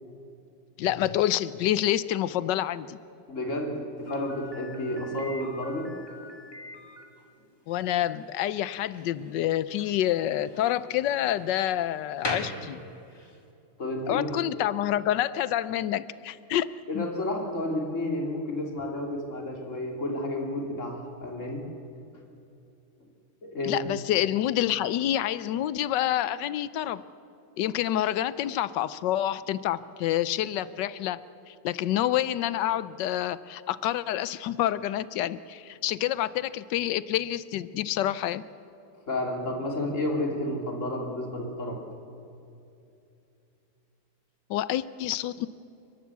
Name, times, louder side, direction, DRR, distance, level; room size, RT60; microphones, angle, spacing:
voice 1, 0.8-3.0 7.7-12.8 14.1-16.7 16.9-17.1 23.6-27.0 27.6-31.2 31.5-38.4 44.5-45.5, left 12 dB, 75° left, 17 dB, 1.2 m, -28 dB
voice 2, 3.3-5.9 13.8-14.5 16.9-21.6 23.4-23.8 39.1-41.8, left 1 dB, 40° left, 1 dB, 3.1 m, -31 dB
Slam, 4.1-13.4, left 1 dB, 15° left, 1.7 m, -42 dB
29.5 x 12.0 x 8.3 m, 2.7 s
omnidirectional pair, 2.1 m